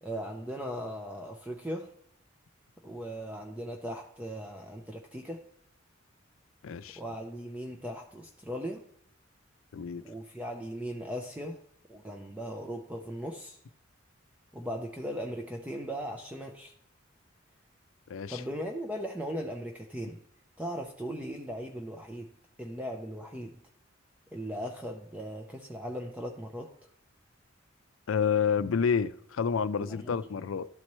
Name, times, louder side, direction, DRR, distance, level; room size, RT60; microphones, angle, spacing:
voice 1, 0.0-1.9 2.8-5.4 7.0-8.8 10.0-11.6 11.9-13.6 14.5-16.7 18.3-20.2 20.6-22.3 22.6-23.6 24.3-26.7 29.8-30.1, equal, 5° right, 0.5 m, -38 dB
voice 2, 6.6-7.0 9.7-10.0 18.1-18.4 28.1-30.7, left 6 dB, 80° left, 0.4 m, -29 dB
12.0 x 4.2 x 3.0 m
head